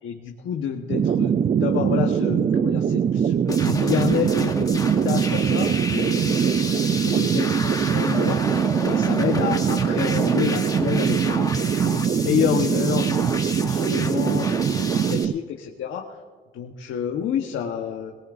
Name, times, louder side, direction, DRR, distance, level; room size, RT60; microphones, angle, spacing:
voice 1, 0.0-16.2 16.5-18.1, left 8 dB, 80° left, 2 dB, 1.2 m, -29 dB
sound 1, 0.9-15.3, right 8 dB, 35° right, 0.4 m, -22 dB
sound 2, 3.5-15.3, left 3 dB, 20° left, 1.1 m, -32 dB
21.0 x 18.5 x 2.6 m, 1.5 s
cardioid pair, 90°, 20 cm